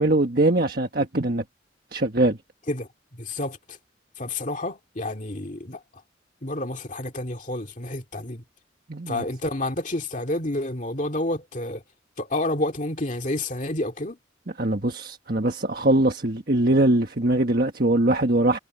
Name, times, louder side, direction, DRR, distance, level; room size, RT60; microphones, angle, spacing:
voice 1, 0.0-1.4 1.9-2.4 8.9-9.2 14.6-18.6, right 1 dB, 50° right, 1.5 m, -22 dB
voice 2, 2.7-3.8 4.2-5.8 6.4-8.4 9.1-11.8 12.2-14.2, left 1 dB, 40° left, 2.4 m, -29 dB
head